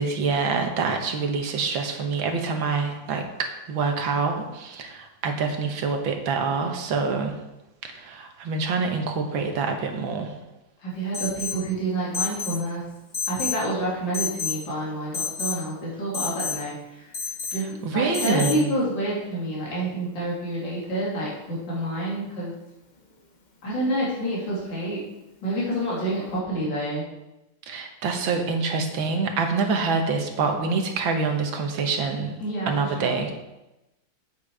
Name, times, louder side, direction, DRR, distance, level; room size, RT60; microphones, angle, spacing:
voice 1, 0.0-7.3 7.8-10.3 17.8-18.7 27.7-32.4 32.7-33.5, right 4 dB, 70° right, 4 dB, 1.9 m, -26 dB
voice 2, 10.8-12.8 13.3-17.1 17.5-22.5 23.6-25.0 25.4-27.0 32.4-33.2, right 1 dB, 60° left, -7 dB, 3.6 m, -28 dB
Alarm, 11.1-11.6 12.1-12.6 13.1-13.6 14.1-14.6 15.1-15.6 16.1-16.6 17.1-17.6 18.1-18.6, left 6 dB, 30° left, 0.9 m, -29 dB
8.4 x 8.3 x 4.8 m, 0.97 s
omnidirectional pair, 2.3 m